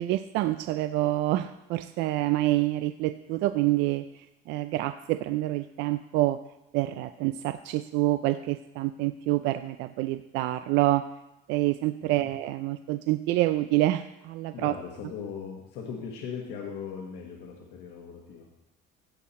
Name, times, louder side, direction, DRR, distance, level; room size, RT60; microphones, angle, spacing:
voice 1, 0.0-6.4 6.7-11.0 11.5-14.7, right 16 dB, 65° right, 11 dB, 0.4 m, -27 dB
voice 2, 14.5-18.5, left 6 dB, 65° left, -1 dB, 1.4 m, -39 dB
16.0 x 5.7 x 4.2 m, 0.94 s
cardioid pair, 170°, 20 cm